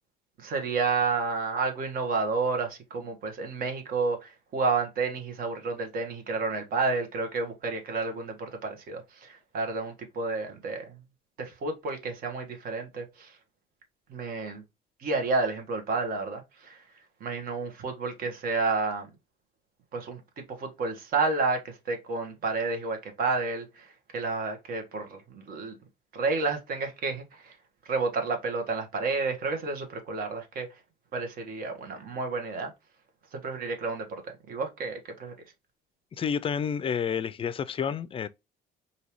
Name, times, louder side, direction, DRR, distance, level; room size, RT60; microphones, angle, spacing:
voice 1, 0.4-10.8 11.4-13.4 14.1-14.6 15.0-16.8 17.2-19.1 19.9-20.2 20.5-25.8 26.1-27.6 27.8-30.7 31.1-32.7 33.3-35.3, right 4 dB, 60° right, 1.4 m, -30 dB
voice 2, 36.2-38.3, left 7 dB, 35° left, 0.4 m, -29 dB
5.1 x 2.8 x 3.0 m
cardioid pair, 110°, 17 cm